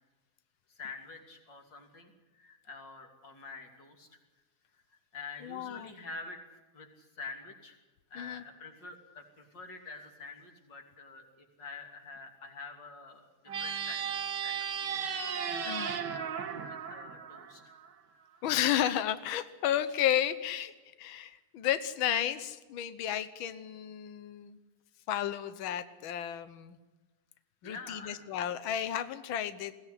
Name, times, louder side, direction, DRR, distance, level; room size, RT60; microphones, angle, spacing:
voice 1, 0.7-4.1 4.9-6.4 6.7-7.8 8.1-13.3 13.6-15.1 15.6-17.8 27.6-28.3, left 4 dB, 35° left, 3 dB, 3.3 m, -47 dB
voice 2, 5.4-5.9 8.2-8.4 15.6-15.9 18.4-20.7 21.0-24.6 25.1-26.8 27.6-29.7, left 11 dB, 90° left, 12 dB, 1.1 m, -32 dB
sound 1, 13.5-17.9, right 7 dB, 55° right, 1.3 m, -35 dB
22.0 x 17.0 x 10.0 m, 1.2 s
omnidirectional pair, 3.5 m